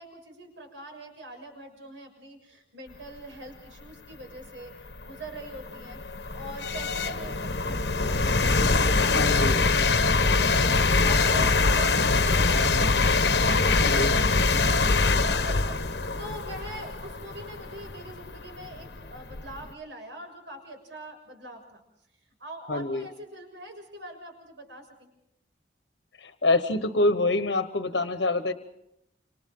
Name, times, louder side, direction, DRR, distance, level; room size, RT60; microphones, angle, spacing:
voice 1, 0.0-6.0 6.3-8.3 8.7-10.0 10.4-12.7 13.3-15.8 16.2-21.8 22.4-25.1, right 1 dB, 85° right, 3 dB, 6.7 m, -43 dB
sound 1, 4.2-4.3 4.9-19.7, left 3 dB, 65° left, 1.0 m, -24 dB
voice 2, 9.1-9.6 13.8-14.1 22.7-23.1 26.2-28.5, left 2 dB, 85° left, 9 dB, 1.2 m, -26 dB
29.0 x 27.0 x 3.9 m, 0.81 s
head